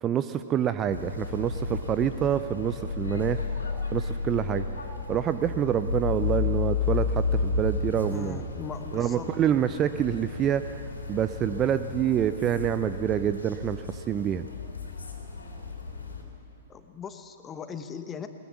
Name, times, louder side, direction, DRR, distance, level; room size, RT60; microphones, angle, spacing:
voice 1, 0.0-3.4 3.9-4.7 5.1-8.4 8.9-10.8 11.1-14.4, right 10 dB, 25° right, 11 dB, 0.6 m, -27 dB
sound 1, 0.9-16.2, left 5 dB, 75° left, 3.4 m, -32 dB
voice 2, 8.1-9.3 16.7-18.3, left 7 dB, 20° left, 9 dB, 1.2 m, -39 dB
21.0 x 20.0 x 7.2 m, 2.9 s
figure-of-eight pair, 110°, 0 cm